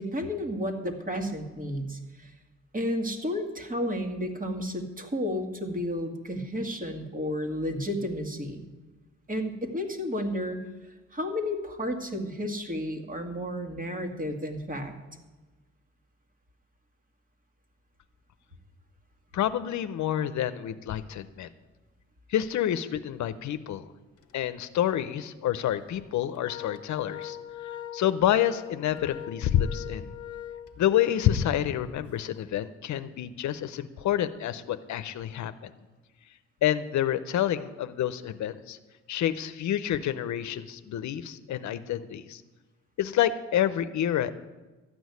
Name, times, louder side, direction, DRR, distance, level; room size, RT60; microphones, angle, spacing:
voice 1, 0.0-2.3 2.7-8.6 9.3-10.6 11.1-14.9, equal, 25° right, 4 dB, 2.2 m, -32 dB
voice 2, 19.3-21.5 22.3-23.8 24.3-27.4 27.9-30.1 30.8-35.7 36.6-38.8 39.1-42.4 43.0-44.3, left 11 dB, 70° left, 12 dB, 0.7 m, -28 dB
Organ, 24.2-24.4 24.8-24.9 25.7-32.0, left 10 dB, 50° left, 1.1 m, -41 dB
13.0 x 6.3 x 9.5 m, 1.2 s
cardioid pair, 90°, 30 cm